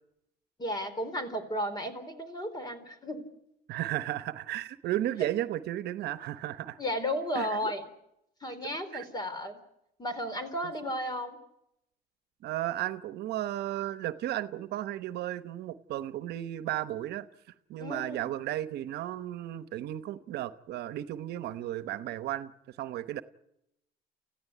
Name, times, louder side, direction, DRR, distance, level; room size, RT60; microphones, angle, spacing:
voice 1, 0.6-3.3 6.8-7.9 8.4-9.6 10.0-11.4 17.8-18.3, equal, 25° left, 10 dB, 4.0 m, -34 dB
voice 2, 3.7-6.8 7.3-7.7 8.9-9.0 12.4-17.3 17.7-23.2, right 13 dB, 75° right, 12 dB, 1.0 m, -34 dB
29.0 x 15.0 x 9.5 m, 0.84 s
cardioid pair, 110°, 17 cm